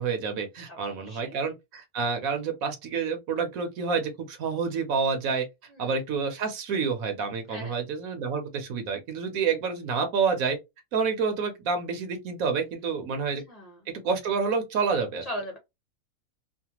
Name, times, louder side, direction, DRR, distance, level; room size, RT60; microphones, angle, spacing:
voice 1, 0.0-5.5 5.8-10.6 10.9-13.4 14.0-15.2, right 5 dB, 85° right, 1.3 m, -28 dB
voice 2, 0.7-1.4 5.7-6.0 7.5-7.8 13.5-13.8 15.2-15.6, equal, 30° left, 1.2 m, -39 dB
3.2 x 2.1 x 2.9 m
omnidirectional pair, 1.4 m